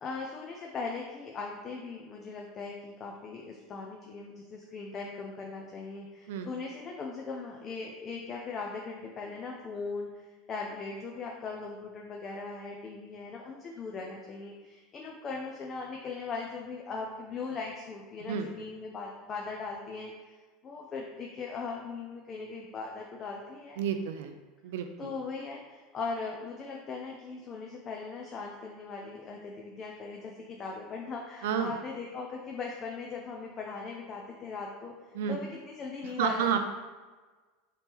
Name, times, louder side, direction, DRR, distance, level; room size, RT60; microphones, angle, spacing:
voice 1, 0.0-20.3 20.6-23.8 25.0-36.6, left 4 dB, 25° left, 0 dB, 0.4 m, -39 dB
voice 2, 23.8-24.3 24.6-25.1 31.4-31.7 35.1-35.4 36.2-36.6, right 8 dB, 85° right, 7 dB, 0.3 m, -30 dB
3.5 x 2.9 x 4.4 m, 1.3 s
supercardioid pair, 140°, 0 cm